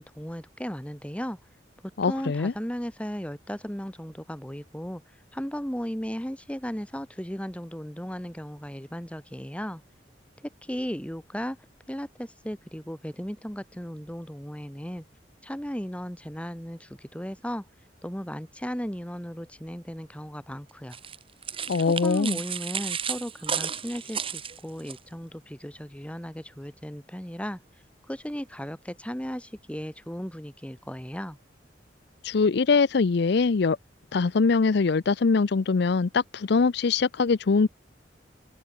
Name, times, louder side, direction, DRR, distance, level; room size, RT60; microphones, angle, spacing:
voice 1, 0.0-1.4 2.1-5.0 5.3-9.8 10.6-11.6 11.9-15.0 15.4-17.6 18.0-21.0 21.9-27.6 28.1-31.4, equal, 5° left, 4.1 m, -36 dB
voice 2, 2.0-2.5 21.7-22.4 32.2-33.8 34.1-37.7, left 4 dB, 70° left, 0.5 m, -23 dB
sound 1, 20.9-25.0, right 7 dB, 30° right, 1.9 m, -33 dB
open air
head